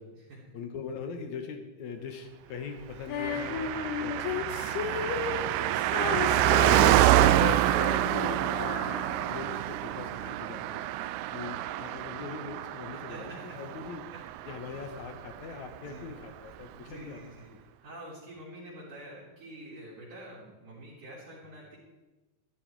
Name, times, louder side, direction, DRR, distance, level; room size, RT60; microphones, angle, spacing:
voice 1, 0.5-5.1 6.2-10.8 11.3-14.1 14.5-17.2 17.5-17.6, left 5 dB, 65° left, 6 dB, 2.0 m, -42 dB
Female singing, 3.1-9.6, left 7 dB, 85° left, 3.0 m, -34 dB
Car passing by, 3.2-15.1 15.3-15.4, right 14 dB, 85° right, 2.6 m, -27 dB
voice 2, 12.9-13.8 14.1-14.2 15.7-16.1 16.7-17.5 17.8-21.8, right 1 dB, 50° right, -8 dB, 4.8 m, -47 dB
14.5 x 13.0 x 4.7 m, 1.2 s
omnidirectional pair, 4.6 m